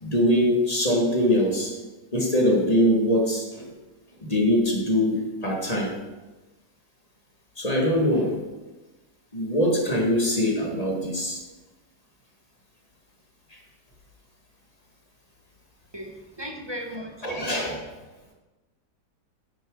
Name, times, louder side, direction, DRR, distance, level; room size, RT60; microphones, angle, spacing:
voice 1, 0.0-1.7 2.1-3.7 4.3-5.9 7.6-8.4 9.3-11.4 17.2-17.8, equal, 20° left, -1 dB, 2.0 m, -22 dB
voice 2, 16.4-17.1, equal, 15° right, 1 dB, 1.1 m, -35 dB
9.9 x 9.7 x 3.9 m, 1.1 s
omnidirectional pair, 1.9 m